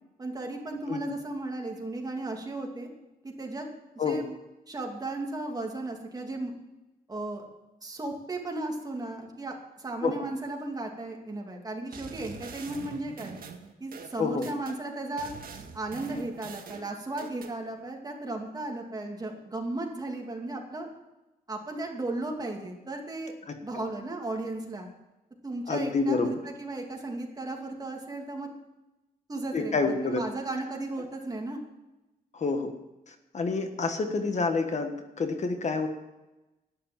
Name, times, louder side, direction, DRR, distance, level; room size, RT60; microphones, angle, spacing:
voice 1, 0.2-2.9 3.2-3.7 3.9-4.3 4.7-6.5 7.1-7.4 7.8-13.3 13.8-15.3 15.7-20.9 21.5-23.3 23.6-24.9 25.4-28.5 29.3-31.6, right 2 dB, 25° right, 1 dB, 2.6 m, -35 dB
sound 1, 11.9-14.8 15.2-17.5, right 5 dB, 65° right, 1.8 m, -44 dB
voice 2, 14.2-14.5 23.7-23.8 25.7-26.3 29.5-30.2 32.3-32.7 33.1-35.9, left 4 dB, 45° left, 6 dB, 1.4 m, -28 dB
12.0 x 10.0 x 7.4 m, 1.0 s
wide cardioid pair, 125°, 16 cm